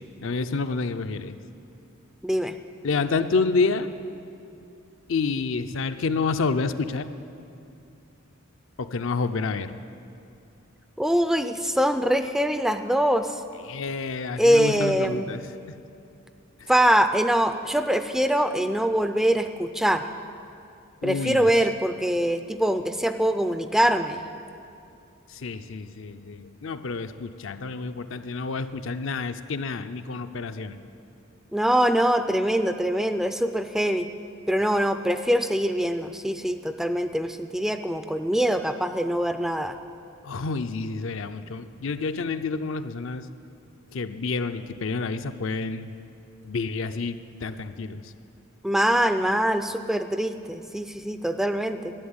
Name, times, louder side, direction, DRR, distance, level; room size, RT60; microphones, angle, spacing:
voice 1, 0.2-1.4 2.8-3.9 5.1-7.1 8.8-9.7 13.7-15.4 21.0-21.5 25.3-30.8 40.2-43.3 43.9-45.9 46.4-48.0, left 4 dB, 65° left, 9 dB, 0.5 m, -29 dB
voice 2, 2.2-2.5 11.0-13.4 14.4-15.3 16.7-20.0 21.0-24.3 31.5-34.1 34.5-39.8 48.6-51.9, equal, ahead, 9 dB, 0.4 m, -23 dB
12.0 x 8.0 x 9.7 m, 2.6 s
head